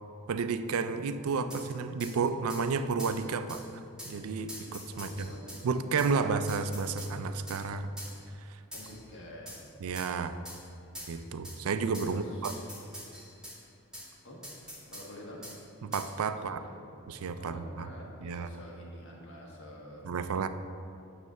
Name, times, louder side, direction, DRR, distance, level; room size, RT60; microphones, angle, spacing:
voice 1, 0.3-5.3 5.6-7.9 8.5-8.6 9.8-10.4 11.1-12.5 15.8-16.6 17.1-17.9 18.2-18.5 20.0-20.5, right 5 dB, 80° right, 11 dB, 0.4 m, -32 dB
sound 1, 1.5-1.6 2.0-2.1 2.5-2.6 3.0-3.2 3.5-3.6 4.0-4.1 4.5-5.6 6.0-6.1 6.5-7.1 7.5-7.6 8.0-8.1 8.7-9.0 9.5-9.6 10.0-10.1 10.4-10.6 10.9-11.1 11.4-11.6 11.9-12.1 12.4-13.6 13.9-14.1 14.4-15.1 15.4-15.6 15.9-16.1, equal, 5° right, 1.9 m, -44 dB
voice 2, 4.9-5.6 8.7-9.7 12.0-12.6 14.2-14.4 14.9-15.4 16.3-16.8 17.4-20.1, left 1 dB, 55° left, -3 dB, 1.4 m, -48 dB
9.2 x 3.3 x 6.6 m, 2.6 s
head